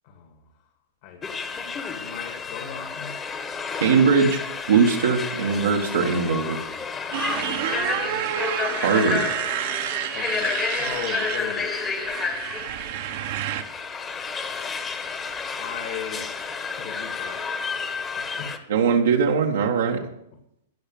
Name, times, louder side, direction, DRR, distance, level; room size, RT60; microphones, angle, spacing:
voice 1, 0.0-0.7 1.0-1.2 1.9-3.2 7.3-8.3 10.1-11.8 12.9-13.5 15.6-16.3 16.8-17.6 18.0-18.5 19.7-20.1, left 8 dB, 55° left, 4 dB, 2.1 m, -38 dB
sound 1, 1.2-18.6, left 5 dB, 20° left, 1.3 m, -31 dB
voice 2, 3.8-4.4 4.7-6.6 8.8-9.2 18.7-20.0, right 5 dB, 80° right, 1 dB, 1.5 m, -20 dB
Motorcycle, 7.1-13.6, right 11 dB, 60° right, 1.1 m, -29 dB
15.5 x 5.8 x 7.1 m, 0.80 s
hypercardioid pair, 130°, 0 cm